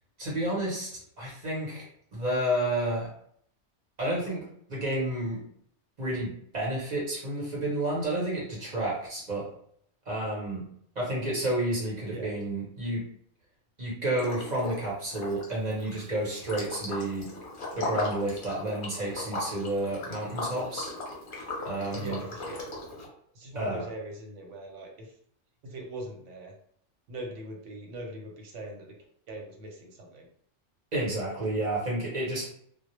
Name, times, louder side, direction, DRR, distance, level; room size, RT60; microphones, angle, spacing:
voice 1, 0.2-0.9 1.2-3.1 4.0-5.4 6.0-9.5 10.1-10.6 11.0-13.0 13.8-17.3 17.7-20.9 21.6-22.2 23.5-23.9 30.9-32.5, right 1 dB, 40° right, -5 dB, 0.8 m, -30 dB
Liquid, 14.2-14.8 15.1-23.1, left 2 dB, 50° left, 0.7 m, -37 dB
voice 2, 21.9-22.7 23.3-25.1 25.6-26.5 27.1-29.0 29.3-30.3, right 1 dB, 80° right, 1 dB, 1.0 m, -41 dB
2.1 x 2.0 x 2.9 m, 0.65 s
omnidirectional pair, 1.2 m